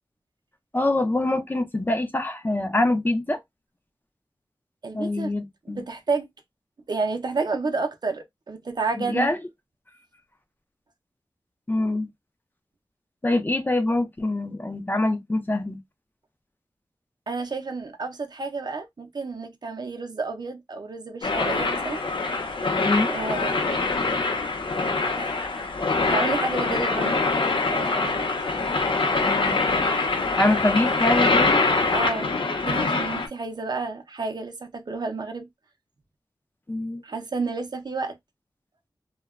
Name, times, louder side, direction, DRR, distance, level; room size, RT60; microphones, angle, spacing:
voice 1, 0.7-3.4 4.9-5.8 9.1-9.4 11.7-12.1 13.2-15.8 22.8-23.1 29.2-29.7 30.4-31.7 36.7-37.0, left 2 dB, 25° left, 0.4 m, -24 dB
voice 2, 4.8-5.3 5.6-6.3 6.9-9.3 17.3-22.0 23.0-23.8 25.2-25.4 26.0-27.2 27.7-28.3 31.9-35.5 37.0-38.2, right 3 dB, 55° right, 0.5 m, -30 dB
sound 1, 21.2-33.3, left 3 dB, 75° left, 0.7 m, -24 dB
2.8 x 2.2 x 2.3 m
wide cardioid pair, 95°, 9 cm